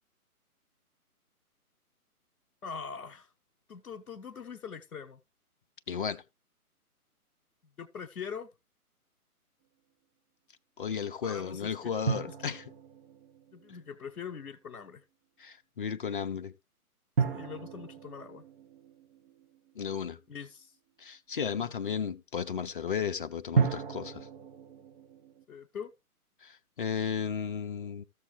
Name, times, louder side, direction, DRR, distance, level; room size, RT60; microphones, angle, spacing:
voice 1, 2.6-3.3 3.7-5.2 7.8-8.5 11.2-11.9 13.5-15.0 17.3-18.4 20.3-20.7 21.6-21.7 25.5-25.9, left 6 dB, 75° left, 1.1 m, -42 dB
voice 2, 5.9-6.2 10.8-12.6 15.4-16.5 19.8-20.2 21.0-24.3 26.4-28.0, left 7 dB, 35° left, 0.6 m, -34 dB
sound 1, 12.1-14.3 17.2-20.1 23.6-25.4, right 6 dB, 40° right, 1.5 m, -34 dB
14.0 x 7.1 x 3.3 m
figure-of-eight pair, 140°, 45 cm